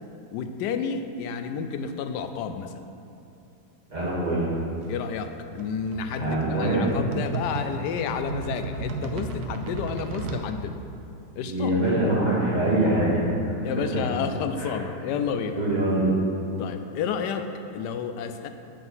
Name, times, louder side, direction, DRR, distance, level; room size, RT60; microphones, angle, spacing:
voice 1, 0.3-2.8 4.9-10.8 11.4-11.7 13.6-15.6 16.6-18.5, left 6 dB, 85° left, 8 dB, 1.2 m, -30 dB
voice 2, 3.9-4.5 6.2-6.9 11.4-13.2 14.5-14.7 15.6-16.1, right 1 dB, 25° right, -8 dB, 2.0 m, -24 dB
sound 1, 4.8-10.5, right 3 dB, 70° right, 1.2 m, -35 dB
7.8 x 5.3 x 5.6 m, 2.7 s
omnidirectional pair, 1.8 m